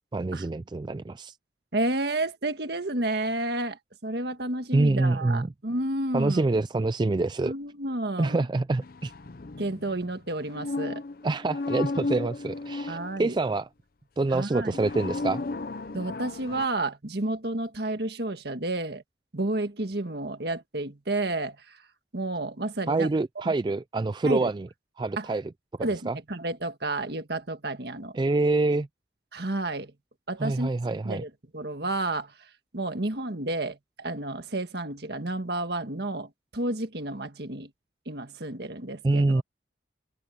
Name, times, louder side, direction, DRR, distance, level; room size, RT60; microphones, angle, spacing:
voice 1, 0.1-1.3 4.7-5.5 6.1-7.5 8.2-9.1 11.2-13.7 14.2-15.4 22.9-24.7 25.0-25.4 26.1-26.2 28.1-28.9 30.4-31.2 39.0-39.4, right 2 dB, 25° right, 0.3 m, -26 dB
voice 2, 1.7-6.4 7.4-8.4 9.6-11.0 12.9-13.4 14.3-14.8 15.9-19.0 19.3-21.8 22.1-23.1 23.4-23.5 24.2-24.5 25.2-25.3 25.8-28.2 29.3-29.9 30.3-37.7 38.0-39.4, right 2 dB, 60° right, 1.7 m, -31 dB
sound 1, 8.8-13.4 14.5-16.7, left 3 dB, 50° left, 0.6 m, -34 dB
open air
head